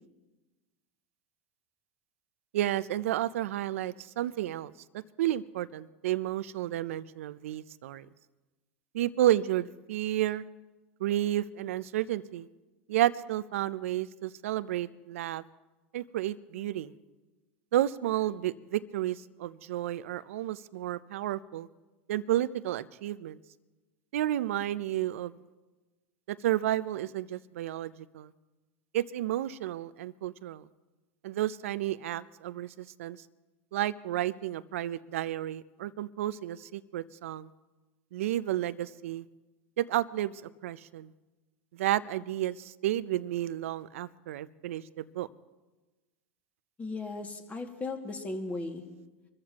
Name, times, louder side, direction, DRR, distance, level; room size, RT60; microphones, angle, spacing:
voice 1, 2.5-8.1 8.9-10.4 11.0-12.5 12.9-15.4 15.9-16.9 17.7-21.7 22.1-23.4 24.1-25.4 26.3-28.3 28.9-30.7 31.2-33.2 33.7-37.5 38.1-39.3 39.8-41.1 41.7-45.3, right 13 dB, 80° right, 16 dB, 0.6 m, -31 dB
voice 2, 46.8-48.9, left 3 dB, 20° left, 3 dB, 2.1 m, -36 dB
25.0 x 14.0 x 3.0 m, 1.2 s
hypercardioid pair, 105°, 7 cm